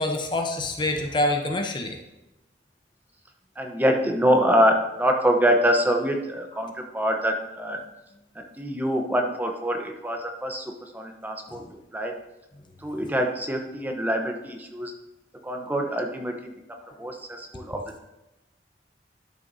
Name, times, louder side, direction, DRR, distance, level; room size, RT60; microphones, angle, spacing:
voice 1, 0.0-2.0 11.5-11.7, left 1 dB, 25° left, 3 dB, 0.7 m, -26 dB
voice 2, 3.6-7.8 8.3-11.6 11.9-12.2 12.8-14.9 15.4-16.5 17.0-18.0, equal, 10° right, 3 dB, 0.9 m, -25 dB
12.0 x 6.5 x 2.7 m, 0.97 s
head